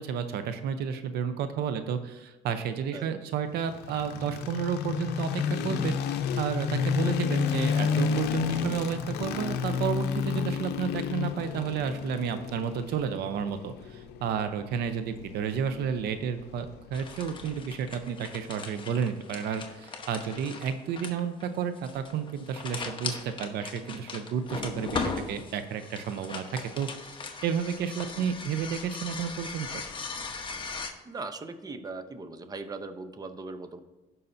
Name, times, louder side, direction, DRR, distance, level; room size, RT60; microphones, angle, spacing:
voice 1, 0.0-5.3 5.6-26.9 27.4-29.8, right 7 dB, 75° right, 9 dB, 0.7 m, -31 dB
sound 1, 3.6-17.7, left 6 dB, 75° left, 0.7 m, -31 dB
sound 2, 16.9-30.9, left 4 dB, 30° left, 1.1 m, -38 dB
voice 2, 31.0-33.8, right 3 dB, 20° right, 9 dB, 0.7 m, -39 dB
16.5 x 5.5 x 2.7 m, 1.1 s
cardioid pair, 110°, 17 cm